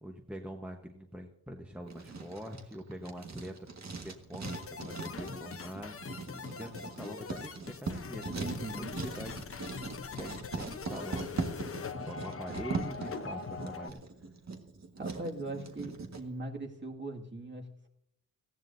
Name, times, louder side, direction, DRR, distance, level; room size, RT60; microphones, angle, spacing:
voice 1, 0.0-3.7 4.0-6.0 6.3-8.5 8.8-8.9 9.1-9.4 10.2-14.0, equal, 5° right, 3 dB, 1.1 m, -44 dB
Writing, 1.9-16.2, right 4 dB, 45° right, 1.7 m, -40 dB
sound 1, 4.4-13.9, left 5 dB, 40° left, 0.8 m, -42 dB
voice 2, 8.4-9.0 9.8-10.0 15.0-17.9, right 2 dB, 30° right, 1 dB, 2.1 m, -40 dB
18.5 x 15.0 x 2.7 m, 0.77 s
cardioid pair, 90°, 36 cm